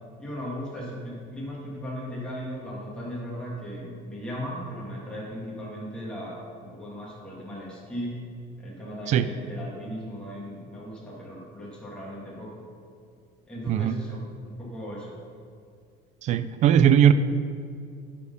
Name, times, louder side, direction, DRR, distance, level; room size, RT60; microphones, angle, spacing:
voice 1, 0.2-8.2 8.6-12.7 13.5-15.2, equal, 5° left, -6 dB, 2.0 m, -37 dB
voice 2, 16.2-17.1, right 9 dB, 40° right, 13 dB, 0.4 m, -19 dB
11.5 x 4.4 x 5.4 m, 2.3 s
cardioid pair, 150°, 18 cm